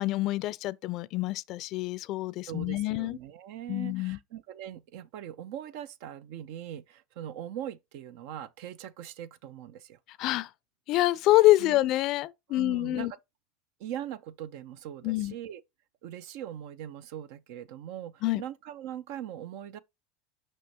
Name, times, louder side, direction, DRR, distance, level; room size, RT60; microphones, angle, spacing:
voice 1, 0.0-3.2 3.7-4.2 10.2-10.5 10.9-13.1 15.0-15.3 18.2-18.4, left 17 dB, 55° left, 0.4 m, -26 dB
voice 2, 2.5-10.0 11.6-11.8 12.5-13.1 13.8-15.6 16.0-19.8, right 10 dB, 65° right, 0.6 m, -41 dB
6.0 x 5.5 x 2.8 m
hypercardioid pair, 95°, 0 cm